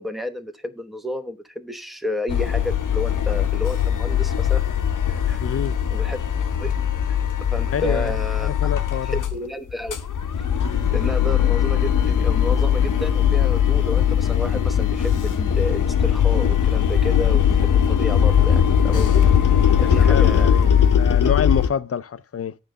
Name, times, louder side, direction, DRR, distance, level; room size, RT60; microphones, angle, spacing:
voice 1, 0.0-4.6 5.3-5.4 5.9-6.2 6.6-6.8 7.5-8.7 9.0-10.0 10.9-19.2 19.8-20.5 21.2-21.3, left 1 dB, ahead, 0.9 m, -31 dB
sound 1, 2.3-9.4 9.7-21.7, left 8 dB, 65° left, 0.8 m, -20 dB
voice 2, 5.4-5.8 7.7-9.2 19.8-22.6, left 7 dB, 45° left, 0.4 m, -27 dB
9.0 x 3.9 x 6.4 m
wide cardioid pair, 75°, 33 cm